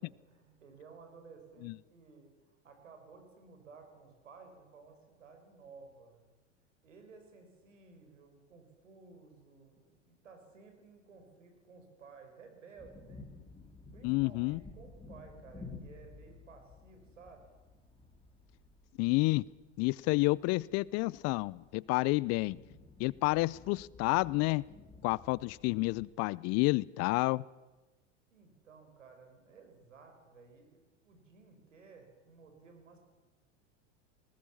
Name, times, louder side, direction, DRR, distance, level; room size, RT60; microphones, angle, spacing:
voice 1, 0.0-6.2 6.8-13.3 13.9-17.5 28.3-33.0, right 4 dB, 85° right, 5 dB, 5.1 m, -56 dB
sound 1, 12.8-26.0, left 3 dB, 15° left, 3.5 m, -54 dB
voice 2, 14.0-14.6 19.0-19.4 19.8-22.6 23.0-24.6 25.0-27.4, left 23 dB, 45° left, 23 dB, 0.6 m, -29 dB
20.0 x 18.5 x 7.2 m, 1.2 s
hypercardioid pair, 90°, 36 cm